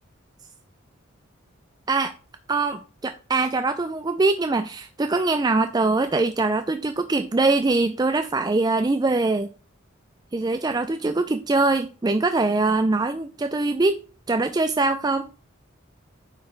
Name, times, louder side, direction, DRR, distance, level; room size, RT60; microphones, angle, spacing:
voice 1, 2.5-9.5 10.3-14.0 14.3-15.3, right 3 dB, 20° right, 0.4 m, -23 dB
9.3 x 4.4 x 4.5 m
head